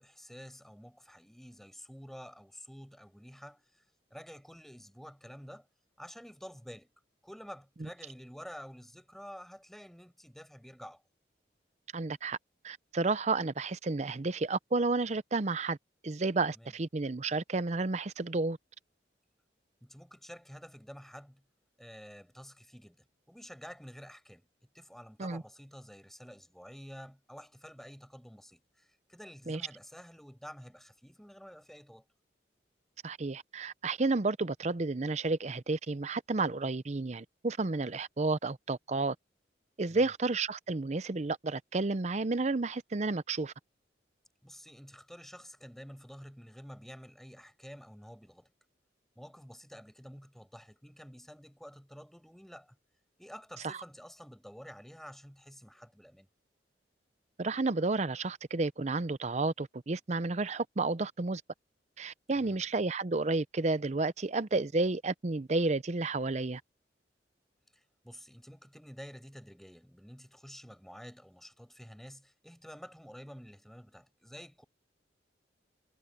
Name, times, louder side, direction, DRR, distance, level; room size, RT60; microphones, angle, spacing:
voice 1, 0.0-3.8 4.1-5.7 6.0-6.9 7.2-11.0 16.5-16.7 19.8-21.4 21.8-23.0 23.3-24.5 24.7-32.0 39.9-40.1 44.4-48.5 49.1-52.7 53.2-56.3 62.3-62.6 67.7-74.6, equal, ahead, 6.4 m, -50 dB
voice 2, 11.9-12.4 12.6-15.8 16.0-18.6 25.2-25.4 29.5-29.6 33.0-39.2 39.8-43.5 53.6-53.8 57.4-61.4 62.0-66.6, right 3 dB, 40° right, 0.6 m, -31 dB
head